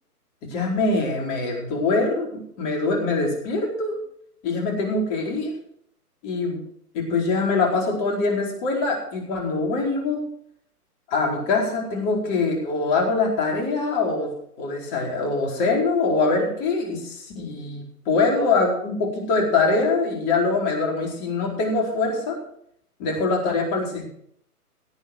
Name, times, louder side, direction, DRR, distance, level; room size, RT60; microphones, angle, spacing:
voice 1, 0.4-4.0 4.4-5.6 6.2-6.6 6.9-10.2 11.1-14.3 14.6-22.4 23.0-24.1, left 3 dB, 25° left, -1 dB, 4.6 m, -23 dB
17.5 x 8.7 x 4.7 m, 0.67 s
figure-of-eight pair, 135°, 46 cm